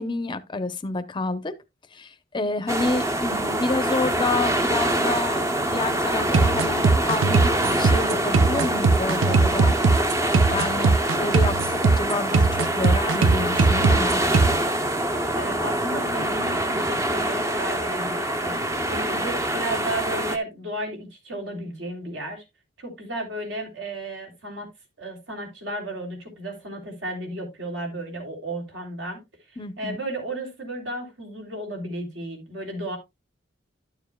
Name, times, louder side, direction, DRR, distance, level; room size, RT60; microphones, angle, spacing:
voice 1, 0.0-1.5 1.9-9.8 10.5-14.2 29.6-30.0, left 2 dB, 25° left, 0.6 m, -29 dB
sound 1, 2.7-20.4, right 1 dB, 15° right, 0.6 m, -25 dB
sound 2, 6.3-14.6, right 4 dB, 90° right, 0.5 m, -20 dB
voice 2, 15.3-22.4 22.8-24.7 25.0-29.2 29.8-33.0, right 1 dB, 65° right, 3.1 m, -33 dB
12.0 x 7.0 x 2.2 m
head